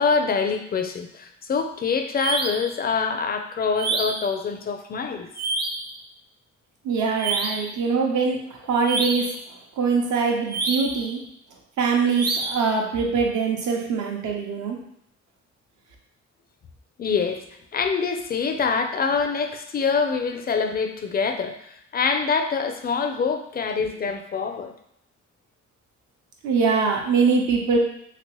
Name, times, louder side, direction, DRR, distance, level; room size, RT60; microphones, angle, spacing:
voice 1, 0.0-5.3 17.0-17.4 17.7-24.7, left 5 dB, 30° left, 6 dB, 0.4 m, -25 dB
sound 1, 2.2-2.7 3.8-4.3 5.3-5.9 7.2-7.7 8.8-9.4 10.5-11.1 12.1-12.7, right 3 dB, 35° right, 0.5 m, -27 dB
voice 2, 6.8-8.4 8.7-9.3 9.8-11.2 11.8-14.8 26.4-27.8, right 5 dB, 75° right, 0 dB, 0.8 m, -23 dB
3.0 x 2.9 x 3.0 m, 0.74 s
cardioid pair, 90°, 30 cm